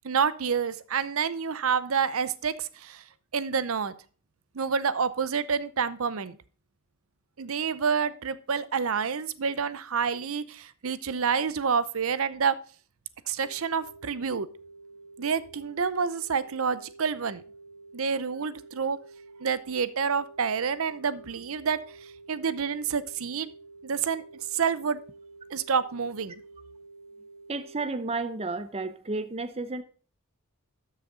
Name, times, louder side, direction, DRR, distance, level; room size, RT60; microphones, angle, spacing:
voice 1, 0.0-3.0 3.3-3.9 4.5-6.4 7.4-12.5 13.3-14.5 15.2-17.4 17.9-19.0 19.4-21.8 22.3-23.5 23.8-24.2 24.5-25.0 25.5-26.3, right 6 dB, 65° right, 0.6 m, -28 dB
sound 1, 13.4-27.8, right 3 dB, 35° left, 4.2 m, -50 dB
voice 2, 27.5-29.8, right 3 dB, 30° right, 0.7 m, -32 dB
12.5 x 6.5 x 3.8 m
head